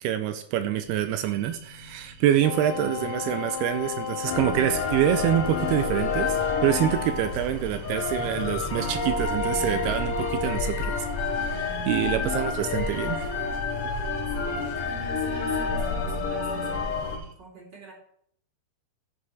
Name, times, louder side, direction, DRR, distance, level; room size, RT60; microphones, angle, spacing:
voice 1, 0.0-13.5, right 11 dB, 80° right, 9 dB, 2.4 m, -26 dB
sound 1, 0.8-17.3, right 2 dB, 50° right, 2.2 m, -48 dB
Wind instrument woodwind instrument, 2.4-7.5, left 7 dB, 85° left, 1.8 m, -34 dB
sound 2, 4.2-17.2, left 4 dB, 60° left, 2.6 m, -29 dB
voice 2, 14.3-17.9, right 4 dB, 30° right, -2 dB, 2.2 m, -44 dB
13.0 x 5.7 x 4.7 m, 0.66 s
omnidirectional pair, 4.8 m